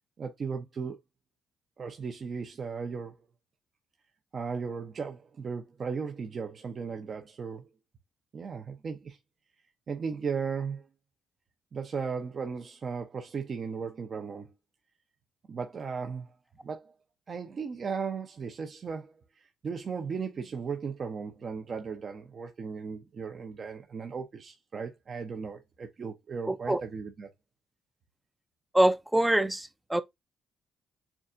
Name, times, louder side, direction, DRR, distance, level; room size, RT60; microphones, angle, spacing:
voice 1, 0.2-1.0 1.8-3.2 4.3-7.7 8.3-9.2 9.9-10.9 11.7-14.5 15.5-16.3 16.6-16.9 17.3-27.3, right 5 dB, 45° right, 0.7 m, -36 dB
voice 2, 26.5-26.8 28.7-30.0, right 1 dB, 10° right, 0.4 m, -25 dB
7.1 x 2.4 x 2.5 m
cardioid pair, 90°, 0 cm